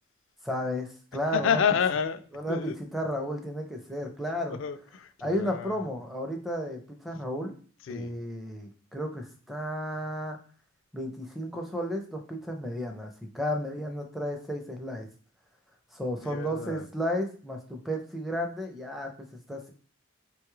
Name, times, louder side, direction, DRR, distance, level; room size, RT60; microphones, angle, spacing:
voice 1, 0.4-1.6 2.3-4.6 5.2-7.6 7.9-10.4 10.9-15.1 15.9-19.7, equal, ahead, 0.5 m, -33 dB
voice 2, 1.3-2.2 2.5-2.8 4.5-5.8 7.9-8.1 16.2-16.9, left 7 dB, 60° left, 0.3 m, -29 dB
5.1 x 2.3 x 3.1 m
head